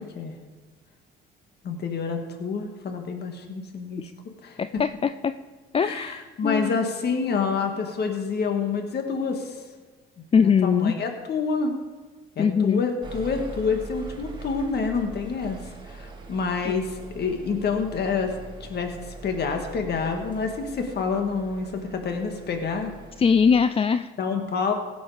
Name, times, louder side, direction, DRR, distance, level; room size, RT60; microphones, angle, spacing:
voice 1, 1.6-4.0 4.4-4.6 5.8-9.6 10.2-11.8 12.3-18.3 18.6-22.9 24.2-24.7, left 5 dB, 55° left, 5 dB, 1.7 m, -28 dB
voice 2, 4.6-5.3 5.7-6.8 10.3-11.0 12.4-12.8 16.7-16.8 23.2-24.1, left 6 dB, 30° left, 12 dB, 0.4 m, -22 dB
sound 1, 13.0-23.6, right 3 dB, 25° right, 2.2 m, -42 dB
16.5 x 7.2 x 4.9 m, 1.4 s
supercardioid pair, 65°, 20 cm